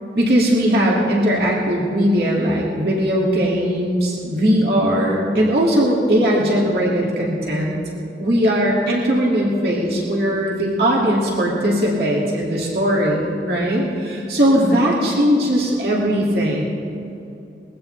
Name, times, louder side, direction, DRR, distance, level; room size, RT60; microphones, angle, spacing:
voice 1, 0.1-7.8 8.2-16.7, equal, 60° right, -4 dB, 2.2 m, -19 dB
20.5 x 16.0 x 3.3 m, 2.5 s
head